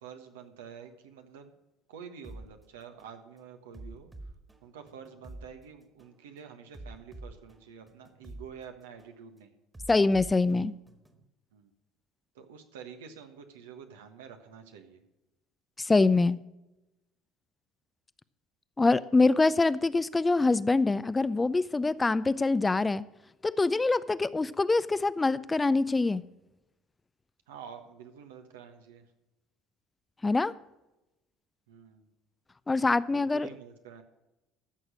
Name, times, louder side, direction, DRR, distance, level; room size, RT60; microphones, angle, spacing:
voice 1, 0.0-1.5 1.9-4.1 4.6-9.5 11.5-11.7 12.3-15.0 27.5-29.0 31.7-32.1 33.1-34.0, right 7 dB, 80° right, 6 dB, 1.3 m, -48 dB
sound 1, 2.2-2.5 3.0-3.2 3.7-5.5 6.0-6.2 6.7-8.5 9.0-9.2 9.7-11.2, right 2 dB, 15° right, 1.8 m, -46 dB
voice 2, 9.9-10.7 15.8-16.4 18.8-23.0 23.4-26.2 30.2-30.5 32.7-33.5, left 3 dB, 20° left, 16 dB, 0.5 m, -24 dB
13.5 x 6.5 x 6.2 m, 0.96 s
hypercardioid pair, 65°, 0 cm